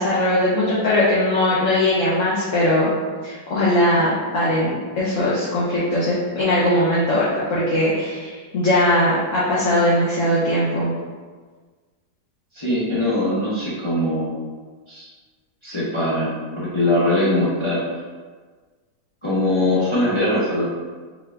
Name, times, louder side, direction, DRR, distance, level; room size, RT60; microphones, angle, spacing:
voice 1, 0.0-2.9 3.2-10.9, left 1 dB, 55° left, -8 dB, 1.0 m, -20 dB
voice 2, 12.5-14.4 14.9-15.1 15.6-17.8 19.2-20.6, left 1 dB, 30° left, -10 dB, 0.5 m, -21 dB
4.6 x 2.3 x 3.3 m, 1.5 s
omnidirectional pair, 1.8 m